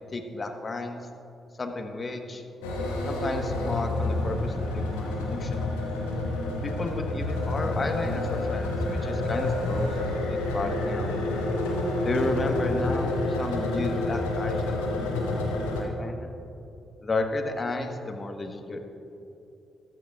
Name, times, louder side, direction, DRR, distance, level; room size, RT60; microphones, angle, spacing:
voice 1, 0.1-1.0 1.6-2.4 3.1-5.8 6.6-11.1 12.0-16.3 17.0-18.8, left 2 dB, 40° left, 4 dB, 1.2 m, -33 dB
sound 1, 2.6-15.8, left 2 dB, 85° left, 1.2 m, -28 dB
14.5 x 11.5 x 2.4 m, 2.8 s
hypercardioid pair, 40°, 0 cm